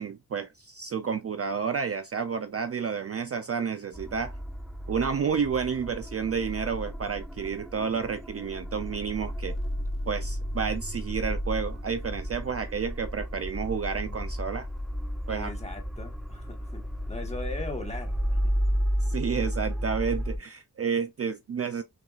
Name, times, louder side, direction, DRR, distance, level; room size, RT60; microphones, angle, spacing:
voice 1, 0.0-4.3 4.9-9.5 10.1-14.7 15.3-15.5 19.1-21.8, right 6 dB, 40° right, 0.4 m, -30 dB
sound 1, 3.9-20.4, equal, ahead, 0.6 m, -32 dB
voice 2, 15.3-16.8 17.1-18.4, left 2 dB, 20° left, 1.2 m, -39 dB
5.9 x 2.5 x 2.3 m
wide cardioid pair, 120°, 37 cm